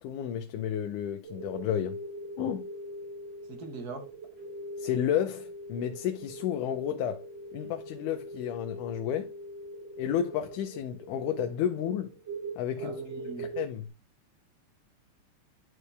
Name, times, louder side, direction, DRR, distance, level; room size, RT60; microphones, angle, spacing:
voice 1, 0.0-2.0 2.4-2.6 4.8-7.2 7.5-9.3 10.0-12.1 12.6-13.0 13.4-13.9, left 10 dB, 85° left, 2.3 m, -31 dB
sound 1, 1.2-13.6, right 1 dB, 20° right, 2.6 m, -42 dB
voice 2, 3.5-4.1 12.8-13.5, right 4 dB, 80° right, 0.8 m, -41 dB
11.0 x 4.6 x 3.3 m
omnidirectional pair, 3.5 m